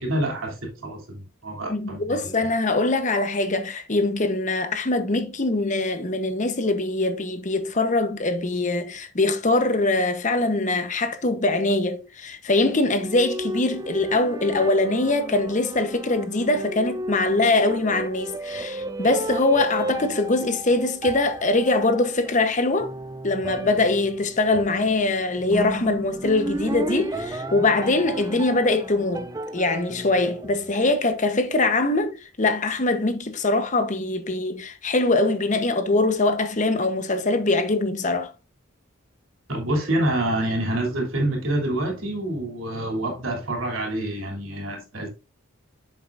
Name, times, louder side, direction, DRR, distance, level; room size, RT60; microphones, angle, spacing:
voice 1, 0.0-2.3 39.5-45.1, right 1 dB, 70° right, 3.2 m, -27 dB
voice 2, 1.7-22.9 23.2-29.3 29.5-38.3, left 2 dB, 35° left, 1.0 m, -23 dB
sound 1, 12.6-31.2, right 2 dB, 15° right, 0.4 m, -34 dB
8.6 x 7.0 x 2.5 m
head